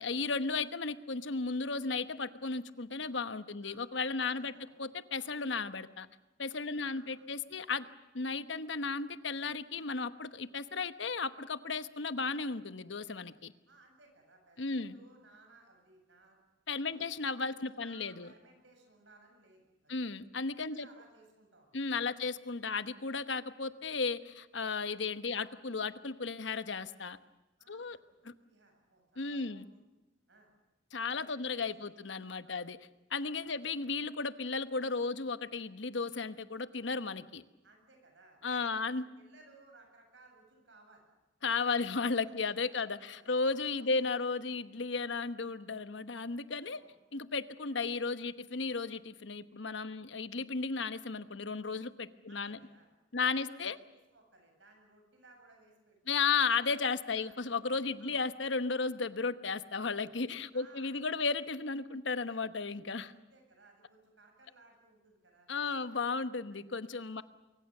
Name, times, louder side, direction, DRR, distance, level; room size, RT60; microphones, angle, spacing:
voice 1, 0.0-4.5 4.8-6.1 6.4-7.8 8.1-13.5 14.6-14.9 16.7-18.3 19.9-20.9 21.7-27.2 27.7-28.0 28.2-28.3 29.2-29.6 30.9-32.8 33.1-37.4 38.4-39.1 41.4-46.8 47.1-52.6 53.1-53.8 56.1-63.1 65.5-67.2, left 4 dB, 70° left, 12 dB, 1.1 m, -34 dB
voice 2, 4.2-4.7 6.7-7.2 7.5-7.7 13.7-16.4 16.8-17.1 17.5-20.0 20.6-22.1 22.7-22.8 25.1-25.4 27.6-29.8 30.3-30.5 31.2-31.7 32.4-32.6 33.4-33.6 37.6-38.9 39.1-41.0 41.7-41.9 42.4-43.4 43.8-43.9 46.7-46.9 52.3-52.9 53.2-56.5 57.1-57.4 58.0-58.2 60.5-60.9 63.1-65.9 66.5-66.7, right 3 dB, 70° right, 3 dB, 8.0 m, -62 dB
24.5 x 24.0 x 6.7 m, 1.1 s
head